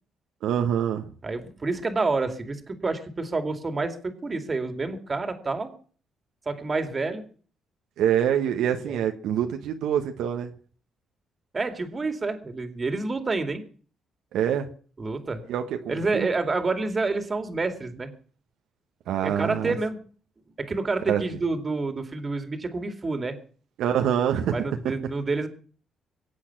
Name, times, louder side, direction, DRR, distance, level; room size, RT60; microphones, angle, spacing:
voice 1, 0.4-1.1 8.0-10.5 14.3-14.7 15.5-16.3 19.1-19.8 21.1-21.2 23.8-24.6, right 9 dB, 80° right, 5 dB, 1.3 m, -25 dB
voice 2, 1.2-5.7 6.5-7.2 8.8-9.0 11.5-13.6 15.0-15.4 15.9-18.1 19.4-20.0 20.6-23.4 24.5-25.5, right 3 dB, 30° right, 8 dB, 2.5 m, -28 dB
23.0 x 8.5 x 6.0 m, 0.43 s
cardioid pair, 90°, 0 cm